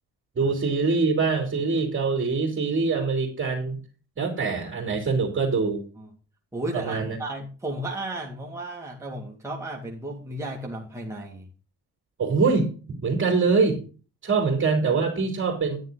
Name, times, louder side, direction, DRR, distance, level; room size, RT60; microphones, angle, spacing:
voice 1, 0.3-3.8 4.2-5.8 6.7-7.2 12.2-12.7 13.0-13.8 14.2-15.8, right 4 dB, 40° right, 1 dB, 3.0 m, -24 dB
voice 2, 6.5-11.5 15.2-15.3, right 1 dB, 10° right, -2 dB, 2.1 m, -34 dB
9.5 x 9.2 x 3.9 m, 0.36 s
cardioid pair, 90°, 30 cm